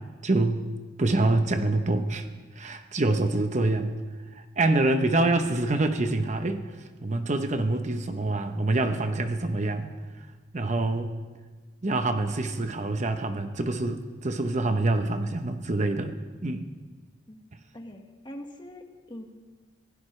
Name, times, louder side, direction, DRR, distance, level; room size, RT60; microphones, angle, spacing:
voice 1, 0.2-0.6 1.0-2.2 2.6-3.9 4.3-6.6 7.0-9.9 10.5-11.1 11.8-16.2 16.4-16.7, right 2 dB, 40° right, 7 dB, 0.9 m, -26 dB
voice 2, 17.7-19.2, left 1 dB, 25° left, 3 dB, 1.6 m, -43 dB
25.5 x 16.5 x 3.3 m, 1.4 s
head